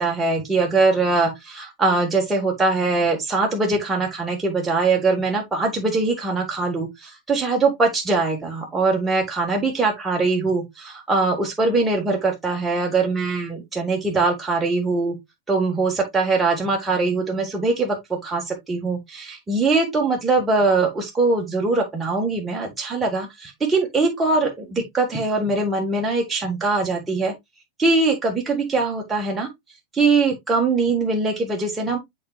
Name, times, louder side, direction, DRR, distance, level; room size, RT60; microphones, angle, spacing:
voice 1, 0.0-15.1 15.5-27.3 27.8-29.5 29.9-32.0, right 3 dB, 15° right, 1.6 m, -22 dB
9.4 x 4.4 x 2.3 m
figure-of-eight pair, 90°, 0 cm